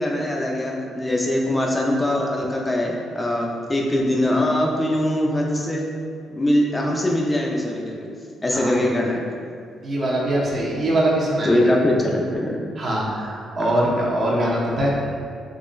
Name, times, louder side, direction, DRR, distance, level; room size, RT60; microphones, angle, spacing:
voice 1, 0.0-5.9 6.3-8.1 8.4-9.2 11.5-12.6 13.6-13.7, left 1 dB, 20° left, -1 dB, 0.4 m, -22 dB
voice 2, 9.8-11.6 12.8-15.1, right 1 dB, 45° right, -4 dB, 0.8 m, -22 dB
3.7 x 2.9 x 2.5 m, 2.2 s
cardioid pair, 90°, 0 cm